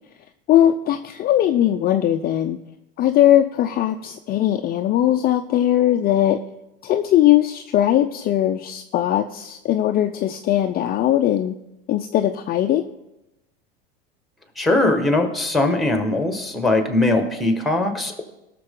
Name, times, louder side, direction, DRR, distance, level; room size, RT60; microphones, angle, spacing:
voice 1, 0.5-2.6 3.0-6.4 6.8-11.6 11.9-12.8, left 12 dB, 30° left, 6 dB, 0.5 m, -19 dB
voice 2, 14.6-18.2, left 2 dB, ahead, 6 dB, 1.6 m, -20 dB
17.5 x 6.7 x 3.8 m, 0.91 s
supercardioid pair, 110°, 30 cm